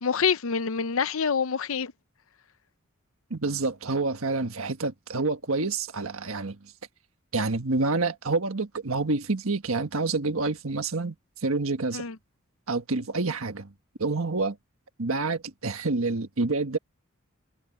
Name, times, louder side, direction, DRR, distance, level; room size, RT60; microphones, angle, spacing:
voice 1, 0.0-1.9 11.9-12.2, left 6 dB, 75° left, 0.7 m, -26 dB
voice 2, 3.3-6.7 7.3-11.1 11.4-12.0 12.7-13.7 14.0-14.6 15.0-16.8, right 3 dB, 80° right, 1.5 m, -28 dB
head